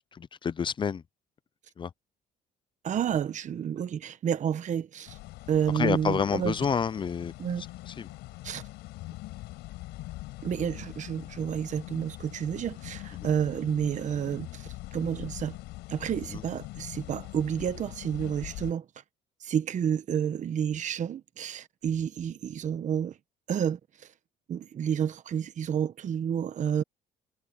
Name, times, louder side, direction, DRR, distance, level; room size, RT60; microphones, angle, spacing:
voice 1, 0.1-1.0 1.8-1.9 5.7-8.1 13.2-13.3 16.3-16.4, left 6 dB, 30° left, 0.6 m, -29 dB
voice 2, 2.8-5.2 5.5-6.5 7.4-7.6 8.4-8.6 10.4-15.6 15.9-18.8 19.4-23.2 23.5-24.1 24.5-26.8, right 8 dB, 45° right, 1.1 m, -30 dB
sound 1, 5.1-18.7, left 18 dB, 90° left, 5.3 m, -43 dB
cardioid pair, 110°, 17 cm